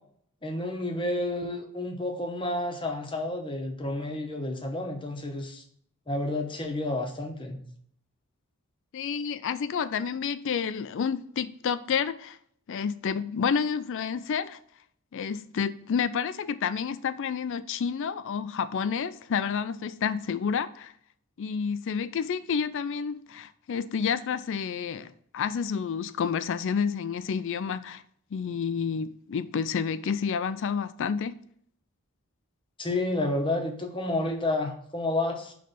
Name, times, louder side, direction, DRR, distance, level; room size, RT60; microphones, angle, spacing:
voice 1, 0.4-5.6 6.1-7.6 32.8-35.5, left 2 dB, 25° left, 0.9 m, -30 dB
voice 2, 8.9-12.4 12.7-14.6 15.1-20.9 21.4-28.0 28.3-31.4, left 6 dB, 60° left, 0.4 m, -29 dB
5.8 x 3.2 x 5.1 m
head